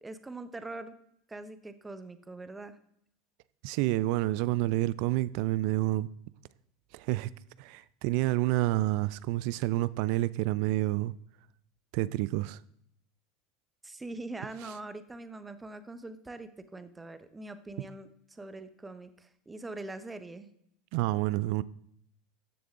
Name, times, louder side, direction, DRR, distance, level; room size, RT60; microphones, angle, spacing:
voice 1, 0.0-0.9 1.3-2.8 13.8-20.5, right 2 dB, 15° right, 1.0 m, -43 dB
voice 2, 3.6-6.1 6.9-7.3 7.6-11.1 11.9-12.6 20.9-21.6, right 17 dB, 65° right, 0.4 m, -28 dB
13.0 x 6.9 x 3.8 m
hypercardioid pair, 85°, 0 cm